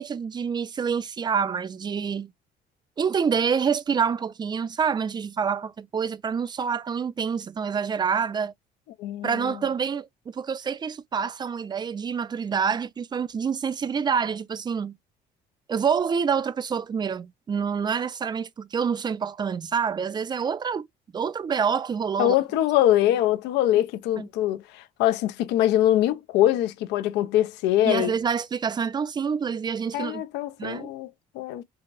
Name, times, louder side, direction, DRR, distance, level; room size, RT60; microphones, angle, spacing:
voice 1, 0.0-2.3 3.0-8.5 9.2-15.0 15.7-20.9 21.1-22.3 24.2-24.3 27.8-30.2 30.6-30.9, right 6 dB, 25° right, 0.4 m, -27 dB
voice 2, 9.0-9.6 22.2-28.1 29.9-31.6, left 13 dB, 90° left, 0.5 m, -23 dB
4.8 x 2.0 x 2.4 m
cardioid pair, 110°, 17 cm